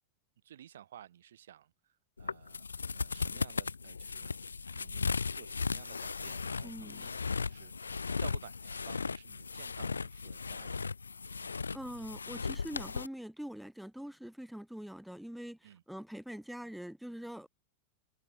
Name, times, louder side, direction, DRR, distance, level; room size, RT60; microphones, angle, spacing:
voice 1, 0.4-2.7 2.9-4.3 4.7-10.8 15.6-15.8, right 11 dB, 60° right, 1.9 m, -54 dB
sound 1, 2.2-13.1, left 5 dB, 75° left, 0.4 m, -37 dB
voice 2, 6.6-7.1 11.7-17.5, equal, ahead, 0.4 m, -44 dB
figure-of-eight pair, 90°, 0 cm